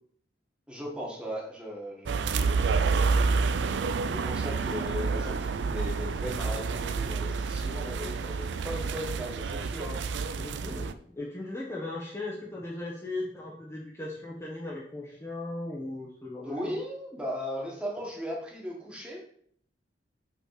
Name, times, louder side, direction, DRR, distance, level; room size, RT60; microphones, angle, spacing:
voice 1, 0.7-3.7 4.1-10.0 16.4-19.2, equal, 5° right, -3 dB, 1.8 m, -38 dB
sound 1, 2.1-10.9, right 4 dB, 80° right, 0.4 m, -29 dB
voice 2, 10.3-16.7, left 2 dB, 15° left, -5 dB, 1.1 m, -38 dB
5.7 x 4.2 x 5.9 m, 0.62 s
head